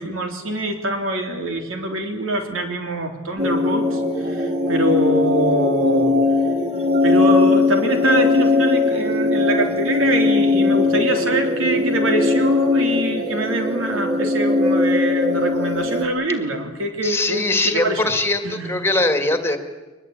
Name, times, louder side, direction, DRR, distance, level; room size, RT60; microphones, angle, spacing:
voice 1, 0.0-6.2 7.0-18.0 18.4-18.8, right 1 dB, 80° right, 4 dB, 3.6 m, -24 dB
sound 1, 3.4-16.0, left 3 dB, 35° right, 3.1 m, -19 dB
voice 2, 17.0-19.6, left 2 dB, 10° left, 7 dB, 2.0 m, -21 dB
22.5 x 21.0 x 8.9 m, 1.2 s
head